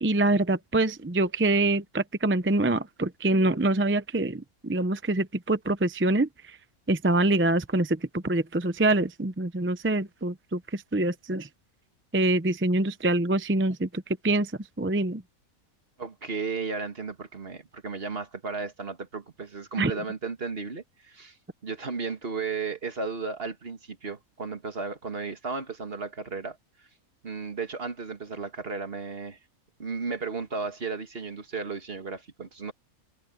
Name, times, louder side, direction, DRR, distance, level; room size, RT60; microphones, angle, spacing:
voice 1, 0.0-6.3 6.9-11.5 12.1-14.5 14.8-15.2 19.8-19.9, right 2 dB, 15° right, 0.4 m, -25 dB
voice 2, 16.0-21.4 21.6-26.6 27.2-29.4 29.8-32.7, right 4 dB, 45° right, 1.9 m, -34 dB
omnidirectional pair, 1.5 m